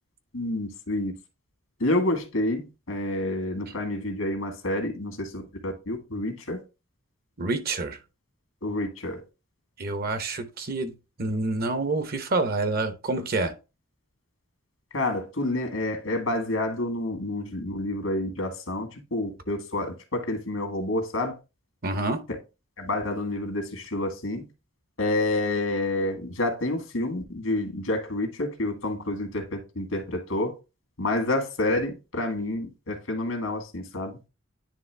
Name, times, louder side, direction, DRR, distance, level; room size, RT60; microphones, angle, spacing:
voice 1, 0.3-1.1 1.8-6.6 8.6-9.2 14.9-21.4 22.8-24.5 25.0-30.5 31.0-34.2, left 2 dB, 85° left, 1.7 m, -29 dB
voice 2, 7.4-8.0 9.8-13.5 21.8-22.2, right 2 dB, 50° right, 0.9 m, -28 dB
9.9 x 3.3 x 3.3 m
head